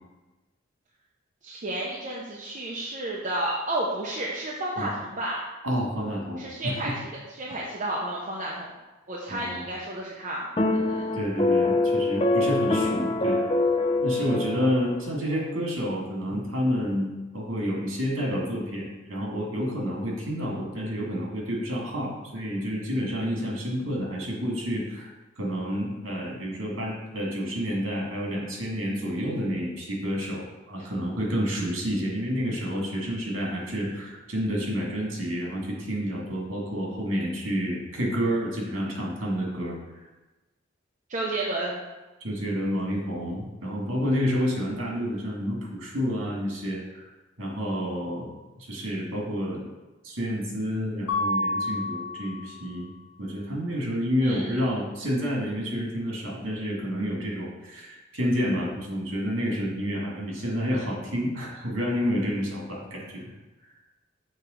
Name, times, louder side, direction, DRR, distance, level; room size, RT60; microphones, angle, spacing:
voice 1, 1.4-5.4 6.4-6.9 7.3-8.7 9.1-10.5 10.9-11.1 41.1-41.8 54.2-54.6, right 1 dB, 40° right, -4 dB, 0.8 m, -31 dB
voice 2, 5.6-6.9 9.3-9.6 11.1-13.6 14.0-25.1 25.4-39.8 42.2-47.1 47.4-49.7 50.0-52.9 53.2-63.3, equal, 80° right, -2 dB, 2.1 m, -29 dB
sound 1, 10.6-15.0, left 2 dB, 30° left, 0.5 m, -24 dB
Mallet percussion, 51.1-52.9, left 2 dB, 85° left, 0.9 m, -29 dB
6.6 x 3.3 x 5.1 m, 1.1 s
head